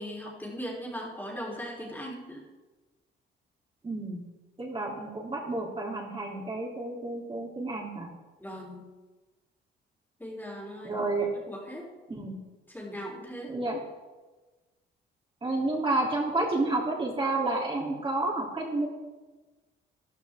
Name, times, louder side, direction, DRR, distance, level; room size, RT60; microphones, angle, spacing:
voice 1, 0.0-2.5 8.4-8.9 10.2-11.0 11.4-11.9 12.7-13.5, equal, 10° left, -2 dB, 3.6 m, -39 dB
voice 2, 3.8-4.2 4.6-8.1 10.8-11.3 12.1-12.3 13.5-13.8 15.4-18.9, right 2 dB, 25° right, -4 dB, 3.1 m, -30 dB
14.0 x 11.5 x 3.6 m, 1.2 s
cardioid pair, 90°, 20 cm